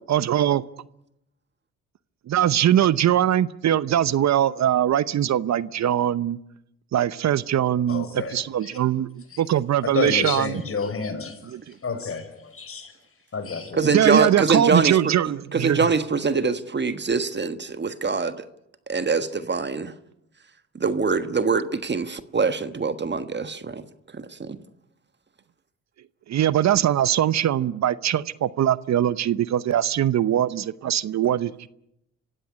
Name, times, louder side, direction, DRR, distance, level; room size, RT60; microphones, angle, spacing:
voice 1, 0.1-0.6 2.3-6.4 6.9-10.6 11.5-11.6 13.8-15.8 26.3-31.7, right 11 dB, 60° right, 18 dB, 0.8 m, -22 dB
voice 2, 7.9-8.4 8.6-8.8 9.3-9.4 9.9-11.4 11.8-12.9 13.3-13.8, left 4 dB, 45° left, 8 dB, 5.8 m, -29 dB
voice 3, 13.7-15.1 15.5-18.4 18.9-19.9 20.7-23.8 24.1-24.6, right 4 dB, 35° right, 11 dB, 1.5 m, -24 dB
25.5 x 16.0 x 9.7 m, 0.82 s
supercardioid pair, 60°, 31 cm